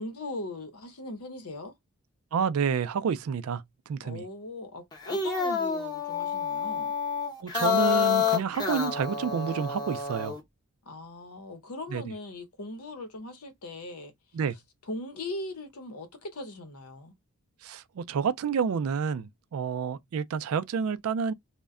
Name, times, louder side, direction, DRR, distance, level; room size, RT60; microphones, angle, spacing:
voice 1, 0.0-1.7 4.0-6.9 10.8-14.1 14.9-17.1, left 2 dB, 85° left, 0.8 m, -39 dB
voice 2, 2.3-4.2 7.4-10.4 11.9-12.0 14.3-14.6 17.6-21.3, right 6 dB, 75° right, 0.3 m, -29 dB
sound 1, 4.9-10.4, left 7 dB, 20° left, 0.7 m, -28 dB
2.1 x 2.1 x 3.5 m
head